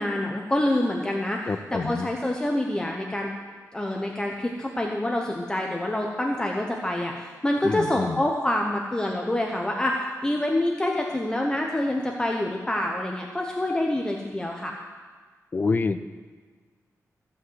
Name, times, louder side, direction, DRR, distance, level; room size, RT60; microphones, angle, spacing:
voice 1, 0.0-1.4 1.7-3.3 3.7-14.7, left 1 dB, 15° left, 0 dB, 0.8 m, -26 dB
voice 2, 1.5-2.1 7.6-8.2 15.5-16.0, left 4 dB, 30° left, 10 dB, 0.5 m, -27 dB
14.5 x 5.4 x 7.9 m, 1.5 s
wide cardioid pair, 160°, 6 cm